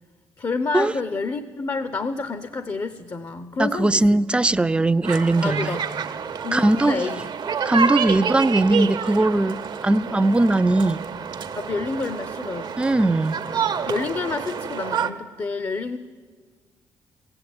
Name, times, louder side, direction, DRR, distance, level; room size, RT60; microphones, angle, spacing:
voice 1, 0.4-4.2 5.4-5.8 6.4-7.3 8.1-8.4 11.6-12.8 13.9-16.0, left 4 dB, 40° left, 12 dB, 0.7 m, -29 dB
voice 2, 3.6-5.7 6.5-7.1 7.7-11.0 12.8-13.4, right 2 dB, 10° right, 14 dB, 0.4 m, -20 dB
sound 1, 5.0-15.1, right 7 dB, 60° right, 0.8 m, -28 dB
15.0 x 8.9 x 8.7 m, 1.5 s
supercardioid pair, 55°, 9 cm